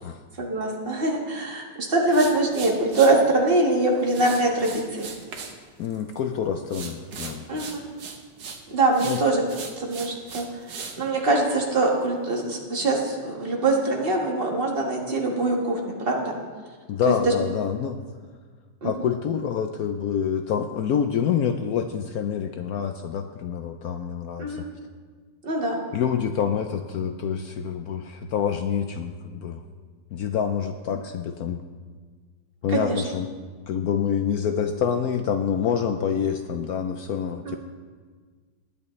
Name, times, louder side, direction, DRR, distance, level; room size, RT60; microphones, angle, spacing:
voice 1, 0.4-5.1 7.5-7.8 8.7-9.4 9.8-10.5 11.0-16.3 17.0-17.3 18.8-18.9 24.4-24.6 25.4-25.8 32.7-33.0 37.4-37.6, right 2 dB, 30° right, 0 dB, 1.6 m, -23 dB
sound 1, 2.1-3.1 4.1-5.6 5.8-6.3 6.7-8.6 8.9-11.0, right 5 dB, 65° right, 1.7 m, -38 dB
voice 2, 5.8-7.5 9.0-9.2 16.9-18.0 18.8-24.6 25.9-29.6 30.1-31.6 32.6-33.4 33.7-37.6, left 7 dB, 70° left, 7 dB, 0.9 m, -27 dB
20.5 x 8.3 x 3.2 m, 1.5 s
omnidirectional pair, 2.0 m